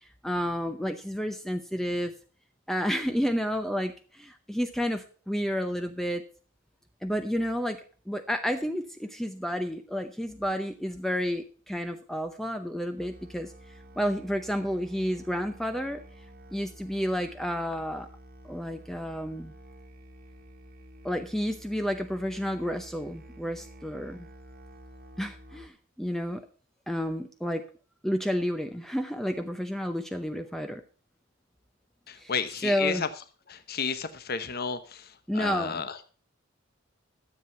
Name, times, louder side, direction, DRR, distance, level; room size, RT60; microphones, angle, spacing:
voice 1, 0.0-2.1 2.7-6.2 7.0-7.8 8.1-13.5 14.0-16.0 16.5-18.1 18.4-19.5 21.0-24.3 25.2-26.4 26.9-27.6 28.0-30.8 32.2-32.3 32.6-33.0 35.3-35.8, equal, ahead, 7 dB, 0.7 m, -30 dB
Musical instrument, 13.0-25.7, equal, 45° right, 1.6 m, -50 dB
voice 2, 32.1-33.1 33.5-36.0, left 5 dB, 50° left, 10 dB, 0.9 m, -32 dB
12.5 x 7.9 x 5.8 m, 0.39 s
head